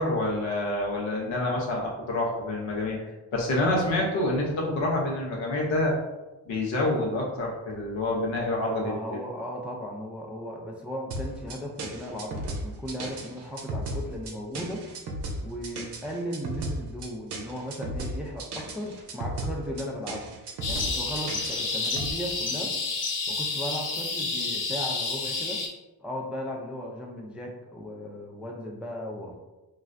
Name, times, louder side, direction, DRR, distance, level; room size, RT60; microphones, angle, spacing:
voice 1, 0.0-3.0 3.3-6.0 6.5-9.2, left 1 dB, 80° left, -2 dB, 0.8 m, -27 dB
voice 2, 8.8-14.8 15.4-20.3 20.7-22.7 23.3-25.6 26.0-29.4, equal, 5° right, 0 dB, 0.3 m, -36 dB
sound 1, 11.1-22.1, right 1 dB, 60° right, 0.6 m, -35 dB
sound 2, 20.6-25.7, left 3 dB, 45° left, 0.6 m, -30 dB
2.5 x 2.0 x 2.4 m, 1.1 s
supercardioid pair, 50°, 45 cm